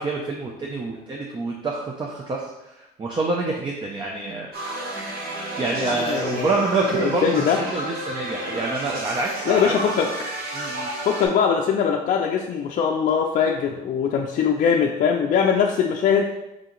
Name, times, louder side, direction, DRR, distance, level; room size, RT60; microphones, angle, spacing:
voice 1, 0.0-4.5 5.6-7.3 7.6-9.8 10.5-10.9, right 3 dB, 30° right, -1 dB, 0.6 m, -27 dB
sound 1, 4.5-11.3, right 1 dB, 65° right, 1.2 m, -31 dB
voice 2, 5.8-6.6 6.8-7.6 9.5-10.1 11.1-16.3, left 7 dB, 50° left, 1 dB, 0.4 m, -21 dB
5.0 x 2.7 x 3.8 m, 0.94 s
cardioid pair, 110°, 17 cm